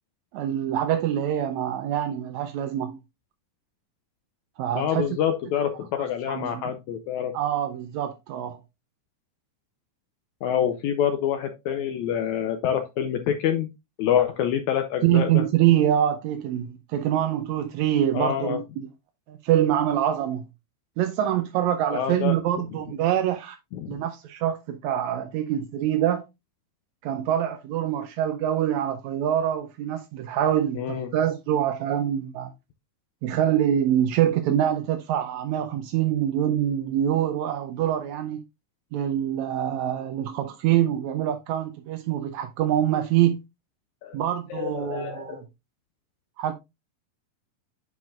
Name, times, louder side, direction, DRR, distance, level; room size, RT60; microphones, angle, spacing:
voice 1, 0.3-3.0 4.6-5.0 6.3-6.7 7.3-8.6 15.0-18.9 19.3-20.5 21.0-23.6 23.9-26.2 27.0-32.5 33.2-38.4 38.9-43.4 44.1-45.4 46.4-46.5, right 11 dB, 90° right, 1.6 m, -25 dB
voice 2, 4.7-7.3 10.4-13.7 14.0-15.4 18.1-18.6 21.9-22.3 23.7-24.0 30.7-31.1 44.0-44.2 44.5-45.4, left 9 dB, 80° left, 1.7 m, -26 dB
9.4 x 4.7 x 2.4 m
omnidirectional pair, 3.9 m